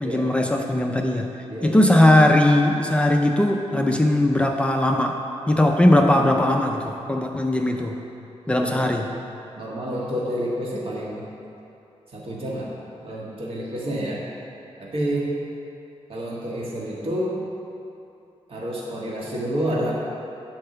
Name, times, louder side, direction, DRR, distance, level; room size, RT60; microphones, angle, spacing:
voice 1, 0.0-5.2 5.5-8.0 8.5-9.1, left 1 dB, 10° left, 2 dB, 0.4 m, -19 dB
voice 2, 1.5-1.8 8.6-8.9 9.6-11.2 12.1-12.7 13.0-14.3 14.8-15.4 16.1-17.4 18.5-19.9, right 1 dB, 55° right, -5 dB, 1.6 m, -29 dB
8.8 x 4.6 x 6.5 m, 2.9 s
wide cardioid pair, 140°, 11 cm